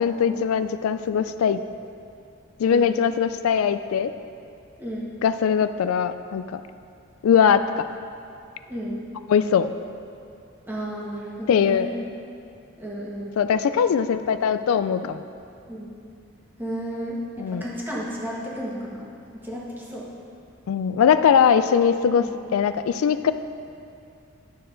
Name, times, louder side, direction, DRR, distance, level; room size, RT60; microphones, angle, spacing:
voice 1, 0.0-1.6 2.6-4.1 5.2-6.6 7.2-7.9 9.3-9.7 11.5-11.9 13.4-15.2 17.4-17.6 20.7-22.3 22.5-23.3, left 7 dB, 90° left, 11 dB, 0.3 m, -21 dB
voice 2, 8.7-9.0 10.6-12.0 12.8-13.3 15.7-15.9 16.6-19.1 19.4-20.1 22.2-22.3, equal, 10° right, -5 dB, 1.4 m, -33 dB
11.0 x 6.9 x 3.8 m, 2.5 s
head